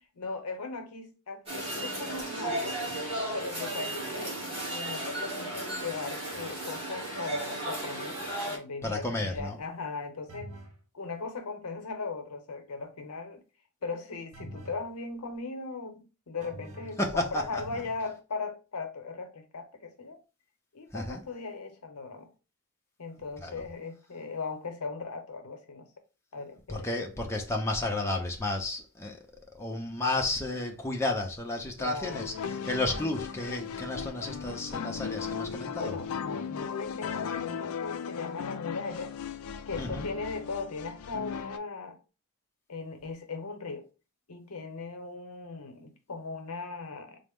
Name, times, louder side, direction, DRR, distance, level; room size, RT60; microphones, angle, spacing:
voice 1, 0.1-2.8 3.3-10.6 10.9-13.4 13.8-20.2 20.7-22.3 23.0-25.9 26.3-26.9 31.8-32.3 35.8-39.2 39.6-42.0 42.7-43.9 44.3-47.2, left 4 dB, 85° left, 0.7 m, -38 dB
sound 1, 1.5-8.6, right 1 dB, 25° right, 1.5 m, -35 dB
voice 2, 8.8-9.6 17.0-17.6 20.9-21.2 23.4-23.6 26.7-29.3 29.5-36.0 39.8-40.1, left 2 dB, 10° left, 0.5 m, -32 dB
sound 2, 10.3-10.8 14.3-14.9 16.4-17.1 17.6-18.1, right 1 dB, 70° right, 0.7 m, -45 dB
sound 3, 32.0-41.6, left 7 dB, 70° left, 0.3 m, -37 dB
4.0 x 2.0 x 3.5 m
head